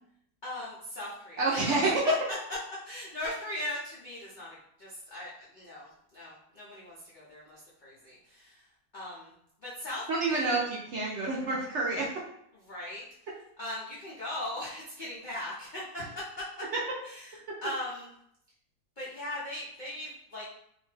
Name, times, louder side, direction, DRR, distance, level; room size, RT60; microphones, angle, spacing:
voice 1, 0.4-1.7 2.0-2.4 2.8-9.3 9.6-10.6 12.5-13.0 13.6-16.5 17.0-18.1 19.0-20.5, left 1 dB, 65° left, -7 dB, 0.5 m, -39 dB
voice 2, 1.4-1.9 10.1-12.1, right 3 dB, 65° right, -4 dB, 0.7 m, -28 dB
2.7 x 2.1 x 3.2 m, 0.74 s
omnidirectional pair, 1.7 m